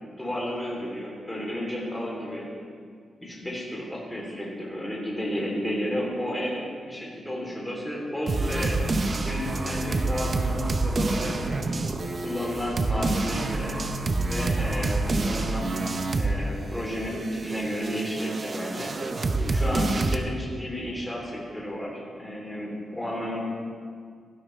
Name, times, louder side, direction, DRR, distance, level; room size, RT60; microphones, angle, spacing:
voice 1, 0.2-2.5 3.2-11.6 12.2-13.8 14.2-15.7 16.1-18.9 19.5-23.4, equal, 5° left, -3 dB, 3.1 m, -32 dB
sound 1, 8.3-16.5 16.7-20.2, right 2 dB, 35° right, 0.7 m, -27 dB
16.5 x 12.5 x 3.2 m, 2.1 s
wide cardioid pair, 145°, 0 cm